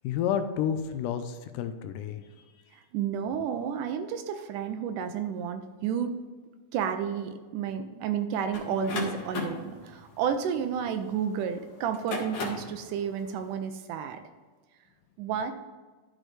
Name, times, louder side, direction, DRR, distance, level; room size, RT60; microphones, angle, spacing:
voice 1, 0.0-2.2, left 8 dB, 80° left, 9 dB, 2.1 m, -30 dB
voice 2, 2.9-6.2 6.7-14.2 15.2-15.5, right 8 dB, 80° right, 8 dB, 2.0 m, -31 dB
sound 1, 8.5-11.3 11.9-12.8, left 3 dB, 50° left, 2.1 m, -35 dB
12.0 x 6.2 x 3.3 m, 1.4 s
omnidirectional pair, 3.9 m